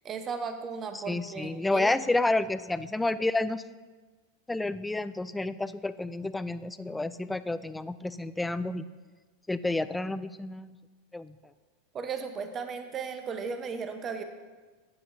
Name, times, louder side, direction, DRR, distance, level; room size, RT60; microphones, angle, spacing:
voice 1, 0.0-1.9 11.9-14.2, right 5 dB, 30° right, 7 dB, 1.0 m, -35 dB
voice 2, 0.9-3.6 4.5-8.9 9.5-10.8 11.1-11.4, left 2 dB, 10° left, 14 dB, 0.3 m, -30 dB
11.5 x 8.5 x 2.7 m, 1.3 s
hypercardioid pair, 95°, 0 cm